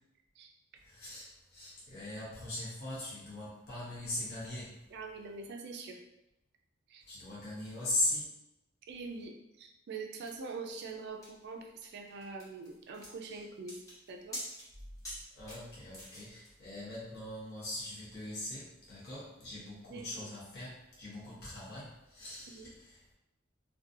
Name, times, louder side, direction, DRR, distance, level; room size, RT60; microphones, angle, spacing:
voice 1, 0.8-4.8 7.1-8.3 13.3-13.4 15.4-23.1, left 1 dB, 55° left, -8 dB, 0.8 m, -40 dB
voice 2, 4.9-6.0 6.9-7.0 8.9-9.3 9.6-13.8 14.1-14.4 19.9-20.3 22.5-22.7, right 4 dB, 55° right, 3 dB, 0.4 m, -44 dB
sound 1, 10.3-16.5, equal, 15° left, 0.9 m, -47 dB
2.5 x 2.2 x 2.5 m, 0.89 s
head